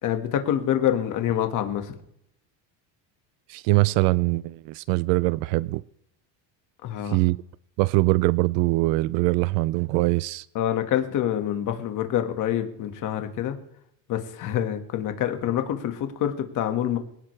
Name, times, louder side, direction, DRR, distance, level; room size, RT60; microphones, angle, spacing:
voice 1, 0.0-1.9 6.8-7.2 10.5-13.6 14.1-17.0, left 10 dB, 40° left, 1.7 m, -26 dB
voice 2, 3.5-5.8 7.1-7.4 7.8-10.5, right 22 dB, 65° right, 0.5 m, -22 dB
21.5 x 17.5 x 3.3 m
cardioid pair, 170°, 46 cm